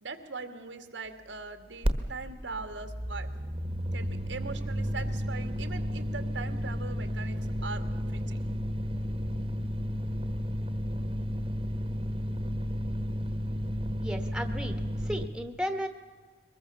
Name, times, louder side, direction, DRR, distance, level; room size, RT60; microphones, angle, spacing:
voice 1, 0.0-3.3 3.9-8.4, right 4 dB, 90° right, 7 dB, 2.2 m, -41 dB
sound 1, 1.8-2.0 2.2-15.3, equal, 30° right, 1.3 m, -32 dB
voice 2, 14.0-15.9, equal, 5° right, 8 dB, 1.4 m, -34 dB
23.5 x 20.5 x 7.1 m, 1.5 s
head